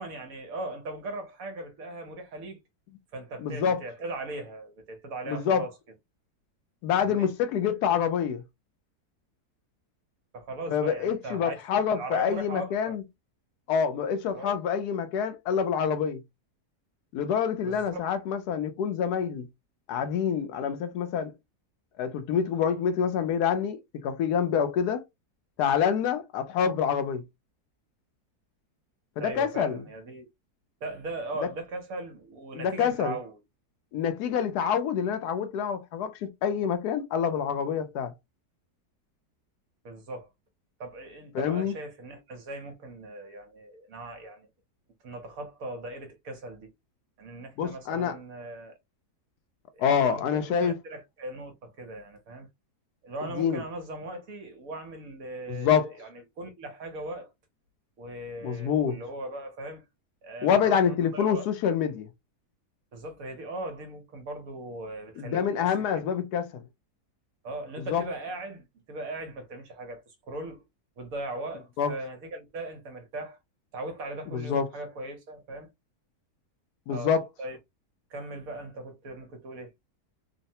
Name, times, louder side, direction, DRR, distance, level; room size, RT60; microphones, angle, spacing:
voice 1, 0.0-2.6 3.1-5.7 6.9-7.3 10.3-11.6 11.9-12.9 14.3-14.6 17.6-18.0 29.2-30.3 30.8-33.4 39.8-40.3 40.8-44.5 45.0-46.7 47.2-48.7 49.7-52.5 53.0-57.3 58.0-59.8 60.2-61.5 62.9-66.0 67.4-70.6 71.0-73.4 73.7-75.7 76.9-77.1 77.4-77.6 78.1-79.7, right 2 dB, 65° right, 1.2 m, -39 dB
voice 2, 3.4-3.8 5.3-5.7 6.8-8.4 10.7-13.0 13.7-16.2 17.1-19.5 19.9-21.3 22.0-25.0 25.6-27.2 29.2-29.8 31.4-31.5 32.5-33.2 33.9-38.1 41.3-41.8 47.6-48.2 49.8-50.7 53.3-53.6 55.5-55.9 58.4-59.0 60.4-62.1 65.2-66.6 67.8-68.0 71.8-71.9 74.3-74.7 76.9-77.3, left 7 dB, 80° left, 1.1 m, -27 dB
3.1 x 2.1 x 2.7 m
omnidirectional pair, 1.7 m